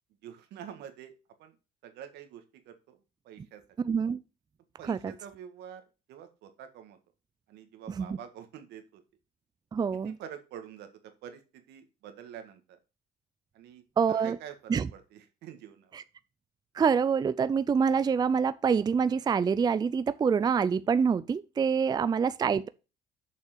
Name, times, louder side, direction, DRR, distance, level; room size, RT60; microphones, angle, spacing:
voice 1, 0.2-1.1 1.4-1.6 1.8-3.0 3.2-3.6 4.8-5.8 6.1-7.0 7.5-9.0 9.9-12.8 13.5-13.8 14.1-16.0 21.8-22.0, right 9 dB, 80° right, 1.8 m, -47 dB
voice 2, 3.8-4.2 4.9-5.1 8.0-8.2 9.7-10.2 14.0-14.4 14.7-14.9 15.9-16.0 16.7-22.7, right 6 dB, 25° right, 0.4 m, -26 dB
6.8 x 5.6 x 6.7 m
cardioid pair, 110°, 17 cm